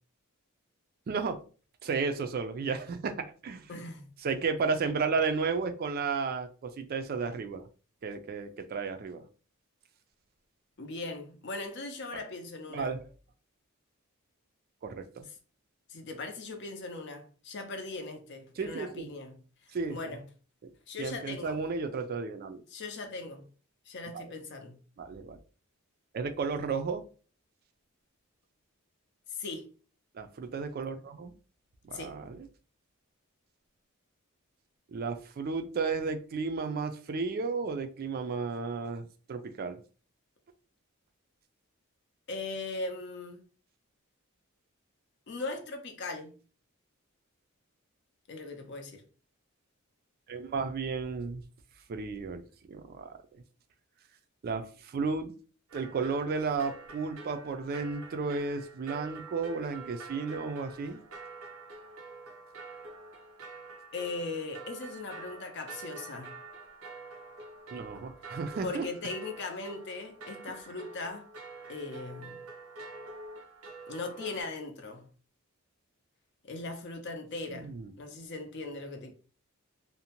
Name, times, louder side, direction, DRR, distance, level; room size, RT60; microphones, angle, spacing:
voice 1, 1.1-1.4 1.8-3.7 4.2-7.6 8.0-9.2 12.7-13.0 14.8-15.3 18.6-19.1 19.7-20.0 20.6-20.7 21.0-22.6 24.1-24.2 25.0-25.4 26.1-27.0 30.2-31.3 31.8-32.4 34.9-39.8 50.3-51.4 51.9-52.4 52.7-53.1 54.4-55.3 55.7-61.0 67.7-68.9 77.5-77.9, right 4 dB, 45° right, 0.3 m, -33 dB
voice 2, 3.7-4.1 10.8-13.0 15.9-20.3 20.9-21.6 22.7-23.5 23.9-24.8 29.3-29.7 31.9-32.2 42.3-43.4 45.3-46.4 48.3-49.0 63.9-66.4 68.6-71.3 71.7-72.4 73.9-75.1 76.4-79.1, left 3 dB, 55° left, 0.5 m, -39 dB
sound 1, 55.7-74.4, right 3 dB, 85° right, 0.7 m, -47 dB
2.6 x 2.1 x 2.8 m
head